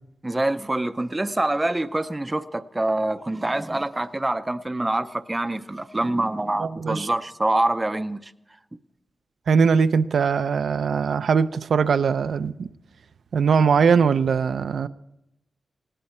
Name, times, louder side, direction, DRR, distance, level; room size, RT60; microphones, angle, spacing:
voice 1, 0.2-8.3, right 2 dB, 15° right, 0.5 m, -25 dB
voice 2, 6.6-7.1 9.5-12.7 13.3-14.9, right 6 dB, 80° right, 0.5 m, -21 dB
19.0 x 17.5 x 4.3 m
wide cardioid pair, 175°, 0 cm